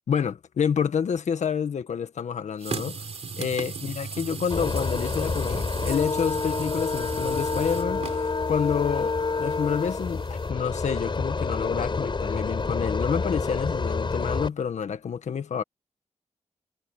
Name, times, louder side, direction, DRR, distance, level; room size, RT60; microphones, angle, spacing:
voice 1, 0.1-3.1 3.4-15.6, left 7 dB, 75° left, 1.6 m, -28 dB
sound 1, 2.6-10.5, right 5 dB, 60° right, 3.8 m, -37 dB
sound 2, 4.5-14.5, left 4 dB, 45° left, 5.3 m, -28 dB
cardioid pair, 70°, 12 cm